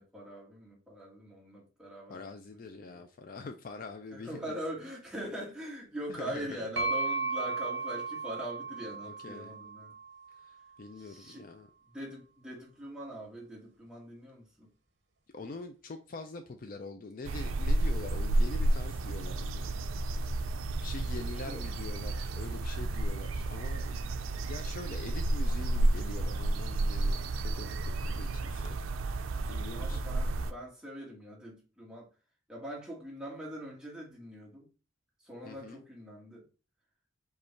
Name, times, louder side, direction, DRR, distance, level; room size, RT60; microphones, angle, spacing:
voice 1, 0.0-2.2 2.5-2.6 4.1-9.9 11.0-11.4 11.9-14.7 21.0-21.7 29.7-32.1 32.5-34.7 35.2-36.4, equal, 5° right, 1.5 m, -42 dB
voice 2, 2.1-4.6 6.1-6.7 9.0-9.5 10.3-11.7 15.3-19.8 20.8-24.1 24.5-28.8 29.5-30.0 35.4-35.8, left 3 dB, 45° left, 0.4 m, -44 dB
sound 1, 6.8-10.5, right 4 dB, 55° right, 1.0 m, -35 dB
sound 2, 17.2-30.5, right 2 dB, 75° right, 0.4 m, -31 dB
5.1 x 2.4 x 4.3 m
head